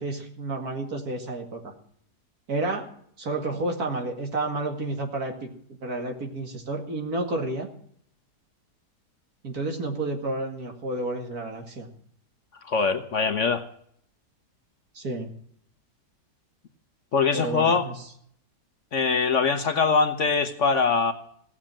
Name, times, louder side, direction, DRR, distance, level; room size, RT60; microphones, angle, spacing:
voice 1, 0.0-1.7 2.5-2.9 3.2-7.7 9.4-11.9 14.9-15.3 17.3-17.9, right 2 dB, 65° right, 3 dB, 2.6 m, -30 dB
voice 2, 12.6-13.6 17.1-17.9 18.9-21.1, left 5 dB, 50° left, 8 dB, 1.2 m, -22 dB
16.5 x 7.4 x 8.8 m, 0.65 s
omnidirectional pair, 1.8 m